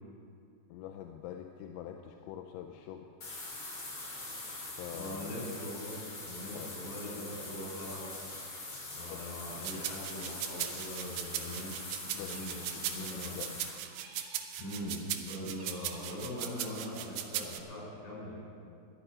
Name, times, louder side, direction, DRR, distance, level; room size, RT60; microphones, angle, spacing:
voice 1, 0.7-3.1 4.8-5.3 6.5-6.7 9.1-9.3 12.1-13.5 15.5-15.6, left 10 dB, 80° left, 4 dB, 2.9 m, -45 dB
sound 1, 3.2-13.7, left 2 dB, 40° left, 3.0 m, -43 dB
voice 2, 4.9-8.1 8.9-11.7 12.2-13.4 14.6-18.4, left 1 dB, 65° left, -4 dB, 6.4 m, -41 dB
sound 2, 9.6-17.6, right 11 dB, 80° right, 2.7 m, -38 dB
sound 3, 12.3-13.0 13.9-14.6 15.5-16.2, right 3 dB, 60° right, 3.1 m, -55 dB
12.5 x 7.4 x 10.0 m, 2.5 s
omnidirectional pair, 5.5 m